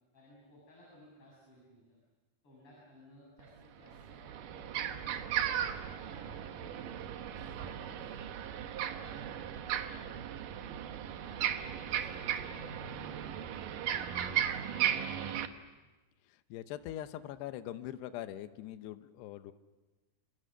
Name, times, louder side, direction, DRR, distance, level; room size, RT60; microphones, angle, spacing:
voice 1, 0.1-2.0 2.4-5.7 6.1-8.2 8.6-10.1 10.6-10.8 11.1-15.3, left 1 dB, 30° left, -4 dB, 8.0 m, -58 dB
sound 1, 3.4-3.5 3.9-15.5, right 9 dB, 70° right, 2.2 m, -36 dB
voice 2, 16.5-19.5, left 12 dB, 75° left, 11 dB, 2.9 m, -42 dB
27.0 x 26.0 x 6.7 m, 1.1 s
omnidirectional pair, 5.2 m